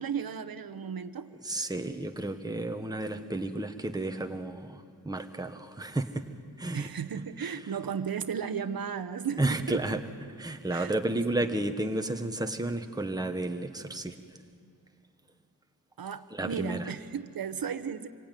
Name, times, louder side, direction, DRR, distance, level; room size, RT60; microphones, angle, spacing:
voice 1, 0.0-1.3 6.7-9.8 10.7-10.9 11.4-11.5 16.0-18.1, right 7 dB, 70° right, 11 dB, 1.0 m, -35 dB
voice 2, 1.4-6.3 6.6-6.9 7.4-7.6 9.4-10.0 10.4-14.2 16.3-16.9, right 2 dB, 10° right, 5 dB, 1.2 m, -32 dB
26.5 x 23.0 x 9.2 m, 2.3 s
wide cardioid pair, 150°, 36 cm